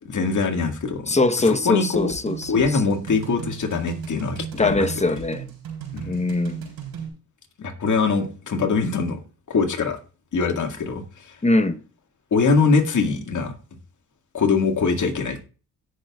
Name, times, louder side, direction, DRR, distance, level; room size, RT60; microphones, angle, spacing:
voice 1, 0.0-1.2 1.4-2.1 2.5-5.2 5.9-6.1 7.6-9.2 9.5-10.0 10.3-11.0 12.3-13.5 14.3-15.4, left 4 dB, 50° left, 2.0 m, -23 dB
voice 2, 1.1-2.6 4.5-5.4 6.1-6.6 11.4-11.8, left 2 dB, 20° left, 1.0 m, -22 dB
sound 1, 1.9-7.1, right 7 dB, 80° right, 3.7 m, -36 dB
17.0 x 6.5 x 2.4 m
supercardioid pair, 65°, 37 cm